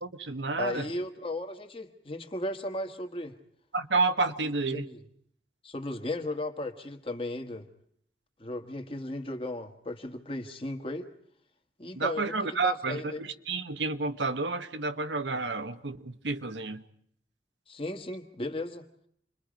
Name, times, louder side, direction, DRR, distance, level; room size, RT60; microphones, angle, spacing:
voice 1, 0.0-0.8 3.7-4.9 11.9-16.8, right 3 dB, 90° right, 10 dB, 1.1 m, -30 dB
voice 2, 0.6-3.3 4.4-5.0 5.6-7.6 8.4-11.1 11.8-13.3 17.7-18.8, left 1 dB, 30° left, 6 dB, 1.5 m, -36 dB
28.5 x 22.5 x 5.2 m, 0.67 s
head